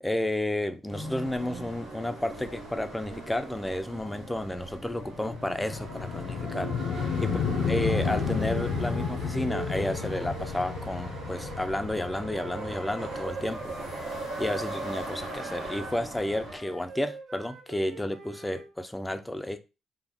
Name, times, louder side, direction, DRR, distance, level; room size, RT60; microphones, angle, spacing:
voice 1, 0.0-6.7 7.2-7.4 7.7-13.7 14.4-19.6, left 1 dB, 10° left, 0.3 m, -31 dB
sound 1, 0.9-16.6, right 2 dB, 85° right, 1.1 m, -39 dB
sound 2, 3.9-14.6, left 5 dB, 85° left, 0.4 m, -32 dB
Wind instrument woodwind instrument, 11.9-14.9 15.3-18.7, right 3 dB, 55° right, 0.9 m, -45 dB
2.3 x 2.0 x 3.3 m
cardioid pair, 90°, 0 cm